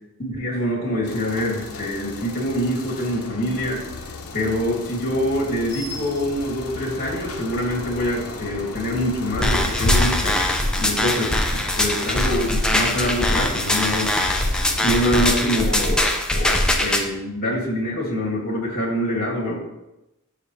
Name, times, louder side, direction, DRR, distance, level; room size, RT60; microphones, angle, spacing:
voice 1, 0.2-3.8 4.3-10.4 10.8-11.4 11.8-14.1 14.8-19.5, equal, 45° left, -2 dB, 3.0 m, -25 dB
sound 1, 1.0-15.0, left 2 dB, 75° left, 1.0 m, -31 dB
sound 2, 9.4-17.0, left 1 dB, 5° left, 0.8 m, -22 dB
9.7 x 6.9 x 3.4 m, 0.93 s
head